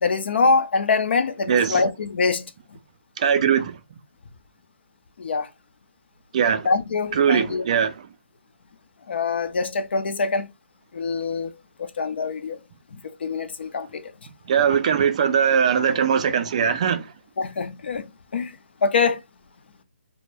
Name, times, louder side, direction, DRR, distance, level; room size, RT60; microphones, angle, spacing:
voice 1, 0.0-2.4 5.2-5.5 6.6-7.6 9.1-10.5 10.9-11.5 11.8-12.6 12.9-14.1 17.4-18.1 18.3-18.6 18.8-19.2, left 4 dB, 60° left, 0.4 m, -24 dB
voice 2, 1.5-1.8 3.2-3.8 6.3-6.7 7.1-8.1 14.5-17.1, right 7 dB, 35° right, 0.3 m, -21 dB
2.1 x 2.1 x 3.0 m
hypercardioid pair, 160°, 7 cm